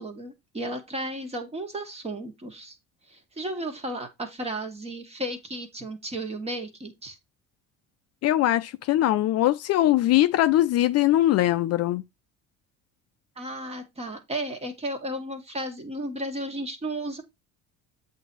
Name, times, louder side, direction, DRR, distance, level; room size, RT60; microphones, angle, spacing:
voice 1, 0.0-2.7 3.1-7.2 13.4-17.2, right 1 dB, 20° right, 1.6 m, -34 dB
voice 2, 8.2-12.0, left 14 dB, 55° left, 0.5 m, -21 dB
8.0 x 2.8 x 6.1 m
cardioid pair, 135°, 31 cm